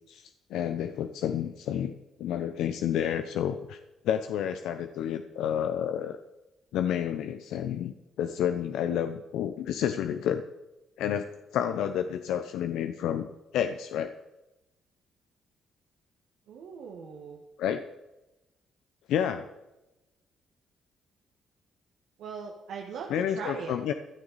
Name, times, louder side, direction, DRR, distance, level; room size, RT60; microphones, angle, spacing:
voice 1, 0.5-1.9 2.2-3.8 4.0-6.2 6.7-10.4 11.0-11.3 11.5-13.3 13.5-14.1 17.6-17.8 19.1-19.5 23.1-23.9, left 9 dB, 85° left, 8 dB, 0.6 m, -30 dB
voice 2, 16.5-17.4 22.2-23.8, right 6 dB, 80° right, -1 dB, 1.5 m, -39 dB
15.5 x 9.9 x 4.1 m, 0.99 s
cardioid pair, 90°, 0 cm